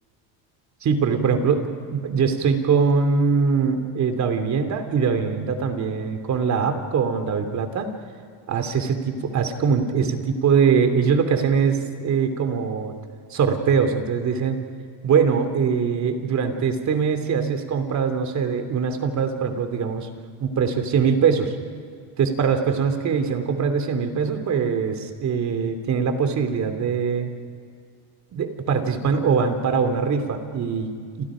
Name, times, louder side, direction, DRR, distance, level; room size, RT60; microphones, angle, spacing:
voice 1, 0.8-7.9 8.5-13.0 13.3-14.6 15.0-20.1 20.4-21.5 22.2-27.3 28.3-31.3, right 6 dB, 45° right, 7 dB, 3.0 m, -22 dB
29.5 x 27.5 x 5.1 m, 2.2 s
cardioid pair, 125°, 41 cm